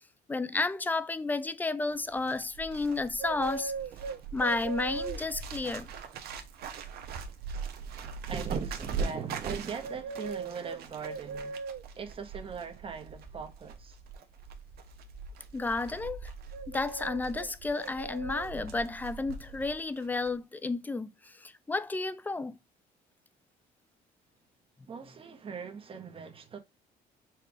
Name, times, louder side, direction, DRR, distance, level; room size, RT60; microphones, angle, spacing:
voice 1, 0.3-3.7 4.3-5.9 15.5-16.3 16.7-22.6, left 3 dB, 10° left, 0.4 m, -32 dB
Bird, 1.9-19.8 20.0-20.3, right 4 dB, 70° right, 0.9 m, -40 dB
voice 2, 7.7-11.6 11.9-14.0 24.9-26.6, right 6 dB, 30° right, 1.0 m, -40 dB
4.5 x 2.4 x 4.7 m
cardioid pair, 110°, 17 cm